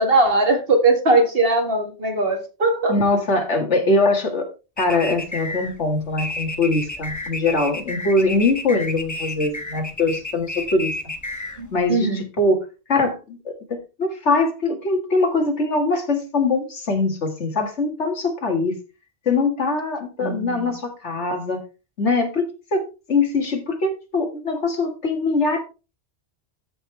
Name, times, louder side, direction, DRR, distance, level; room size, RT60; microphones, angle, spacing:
voice 1, 0.0-3.0 11.6-12.2 20.2-20.7, right 2 dB, 55° right, 4 dB, 2.0 m, -20 dB
voice 2, 2.9-4.5 4.8-10.9 11.7-18.8 19.3-21.6 22.0-22.4 22.7-25.6, left 3 dB, 75° left, 4 dB, 2.2 m, -22 dB
sound 1, 4.8-11.9, left 2 dB, 15° left, 1.0 m, -31 dB
13.5 x 5.5 x 3.3 m, 0.31 s
omnidirectional pair, 1.2 m